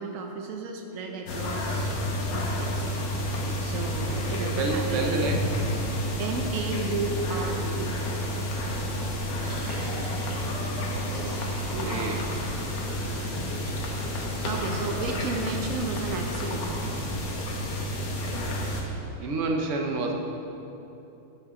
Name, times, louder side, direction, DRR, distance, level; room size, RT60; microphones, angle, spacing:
voice 1, 0.0-1.9 2.3-2.9 3.6-5.3 6.2-8.0 11.7-12.3 12.9-13.4 14.4-16.7, right 4 dB, 85° right, 3 dB, 0.7 m, -33 dB
sound 1, 1.3-18.8, left 1 dB, 65° left, 1.8 m, -30 dB
voice 2, 4.3-5.5 11.1-11.4 11.8-12.3 14.4-15.0 19.2-20.1, right 3 dB, 55° right, 2 dB, 0.9 m, -30 dB
sound 2, 9.4-14.1, right 1 dB, 25° right, 2.3 m, -45 dB
13.0 x 7.0 x 3.7 m, 2.9 s
omnidirectional pair, 2.2 m